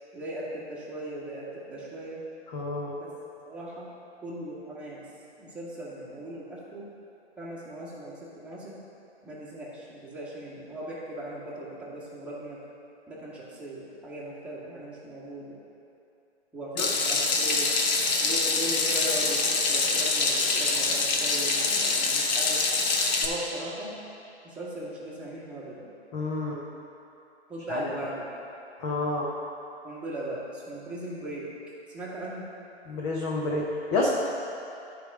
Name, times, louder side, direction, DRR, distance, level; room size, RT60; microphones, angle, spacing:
voice 1, 0.1-2.2 2.9-3.1 3.4-3.9 4.2-5.0 5.4-6.8 7.4-8.8 9.2-12.6 13.1-15.5 16.5-17.7 18.2-22.7 23.2-24.0 24.4-25.8 27.5-28.3 29.8-31.5 31.9-32.5, right 1 dB, 5° right, -9 dB, 1.7 m, -38 dB
voice 2, 2.5-2.9 16.8-16.9 26.1-26.6 27.7-27.8 28.8-29.3 32.9-34.1, left 2 dB, 15° left, -3 dB, 0.4 m, -29 dB
Water tap faucet / Sink (filling or washing), 16.8-23.2, left 3 dB, 40° left, 1.0 m, -25 dB
11.5 x 4.9 x 5.4 m, 2.7 s
hypercardioid pair, 130°, 33 cm